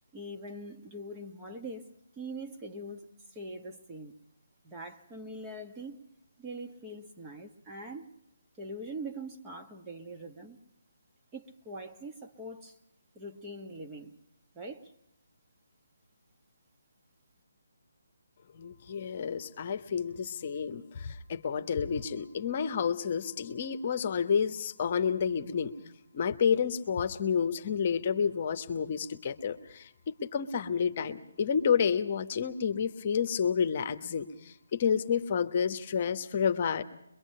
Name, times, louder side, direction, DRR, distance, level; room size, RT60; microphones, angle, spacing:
voice 1, 0.1-1.9 2.2-3.0 3.3-4.2 4.6-6.0 6.4-8.1 8.6-10.6 11.3-12.8 13.1-14.1 14.5-14.9, right 1 dB, 15° right, 2 dB, 1.3 m, -42 dB
voice 2, 18.5-25.7 26.1-36.8, left 7 dB, 40° left, 9 dB, 1.1 m, -30 dB
23.0 x 23.0 x 5.5 m, 0.81 s
figure-of-eight pair, 155°, 0 cm